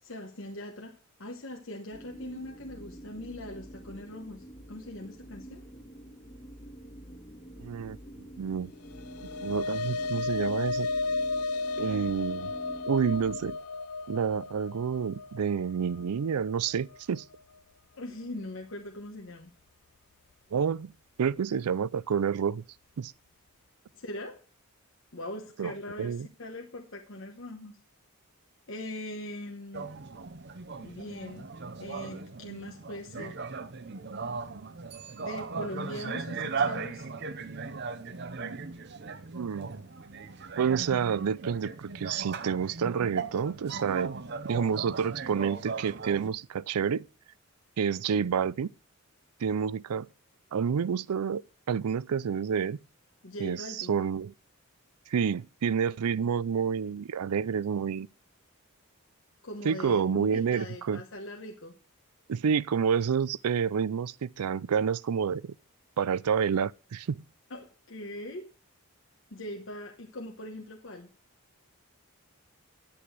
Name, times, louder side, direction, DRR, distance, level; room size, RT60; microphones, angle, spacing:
voice 1, 0.0-5.6 18.0-19.5 23.9-24.4 25.1-27.7 28.7-29.9 30.8-31.5 31.8-33.4 35.2-37.1 53.2-53.9 59.4-61.8 67.5-68.5 69.3-71.1, left 1 dB, 60° left, 1.1 m, -41 dB
sound 1, 1.9-13.5, right 1 dB, 35° left, 2.0 m, -47 dB
voice 2, 7.6-8.7 9.4-10.9 11.8-12.5 12.9-13.6 14.1-17.2 20.5-20.9 21.2-22.6 23.0-23.1 25.6-25.7 26.0-26.3 39.3-39.7 40.6-44.2 44.4-47.0 47.8-48.7 49.4-50.1 50.5-51.4 51.7-52.8 53.4-54.3 55.1-58.1 59.6-61.0 62.3-65.5 66.0-67.2, right 7 dB, 90° right, 0.4 m, -29 dB
sound 2, 8.8-17.4, left 3 dB, 90° left, 0.5 m, -34 dB
sound 3, 29.7-46.3, right 4 dB, 50° right, 0.7 m, -37 dB
10.0 x 8.5 x 4.7 m
head